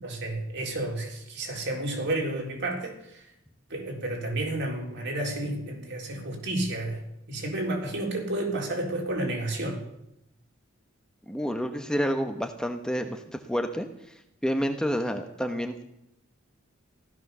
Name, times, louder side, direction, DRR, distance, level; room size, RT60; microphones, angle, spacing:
voice 1, 0.0-3.2 3.7-7.0 7.3-9.8, right 1 dB, 55° right, 1 dB, 4.0 m, -31 dB
voice 2, 11.3-13.2 13.5-13.9 14.4-15.8, equal, 5° left, 5 dB, 1.1 m, -29 dB
16.0 x 13.5 x 6.8 m, 0.80 s
head